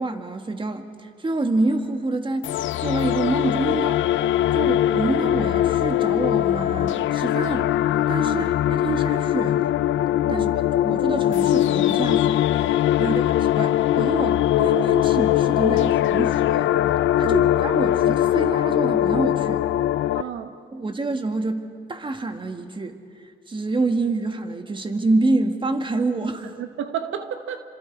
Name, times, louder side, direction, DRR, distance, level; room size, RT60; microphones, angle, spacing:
voice 1, 0.0-2.5 2.8-4.0 4.5-7.7 8.1-9.7 10.3-10.5 10.8-16.7 17.2-19.6 20.7-23.0 23.5-26.5, right 2 dB, 25° right, 6 dB, 2.0 m, -27 dB
sound 1, 2.4-20.2, left 12 dB, 75° left, 0.6 m, -21 dB
voice 2, 20.1-20.5 26.6-27.6, right 9 dB, 80° right, 8 dB, 1.3 m, -32 dB
29.0 x 25.5 x 4.9 m, 2.3 s
cardioid pair, 90°, 20 cm